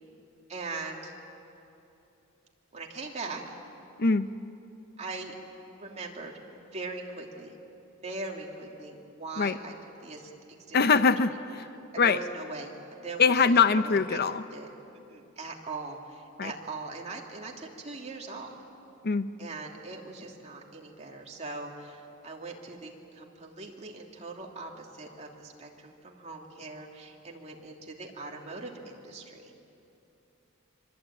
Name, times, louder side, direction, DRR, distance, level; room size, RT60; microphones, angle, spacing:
voice 1, 0.5-1.1 2.7-3.4 5.0-5.3 5.8-7.5 8.0-9.7 10.0-10.3 10.7-10.8 11.5-11.6 12.0-12.7 13.0-14.2 14.5-14.7 15.1-18.6 19.4-29.5, right 3 dB, 35° right, 0 dB, 2.9 m, -40 dB
voice 2, 10.7-11.7 12.0-12.2 13.2-14.4 16.4-16.5 19.0-19.3, left 5 dB, 50° left, 12 dB, 0.7 m, -23 dB
25.5 x 24.5 x 9.0 m, 2.8 s
head